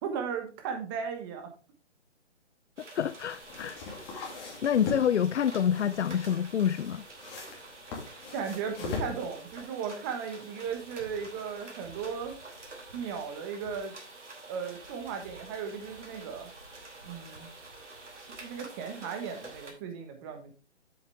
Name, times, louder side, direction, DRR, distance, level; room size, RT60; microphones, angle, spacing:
voice 1, 0.0-1.5 8.3-12.4 12.9-14.0 14.5-16.5 17.0-17.5 18.3-20.5, right 6 dB, 20° right, 1.2 m, -36 dB
sound 1, 2.8-19.7, right 2 dB, 90° right, 3.1 m, -48 dB
voice 2, 2.9-3.8 4.1-4.2 4.6-7.0, left 9 dB, 75° left, 0.5 m, -27 dB
sound 2, 3.2-9.6, left 4 dB, 20° left, 2.3 m, -41 dB
7.8 x 7.8 x 3.4 m
figure-of-eight pair, 145°, 35 cm